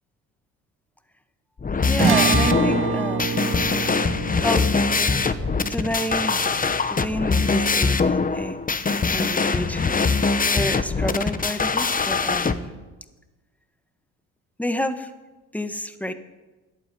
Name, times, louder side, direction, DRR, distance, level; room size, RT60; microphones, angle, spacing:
sound 1, 1.6-12.5, left 4 dB, 20° left, 0.9 m, -22 dB
voice 1, 1.8-3.6 4.4-4.7 5.1-5.2 5.6-6.5 6.9-8.6 9.1-12.7 14.6-15.1 15.5-16.1, left 1 dB, 5° left, 9 dB, 1.4 m, -29 dB
sound 2, 2.0-8.5, right 6 dB, 30° right, 1.1 m, -27 dB
11.0 x 9.1 x 9.3 m, 1.2 s
supercardioid pair, 70°, 38 cm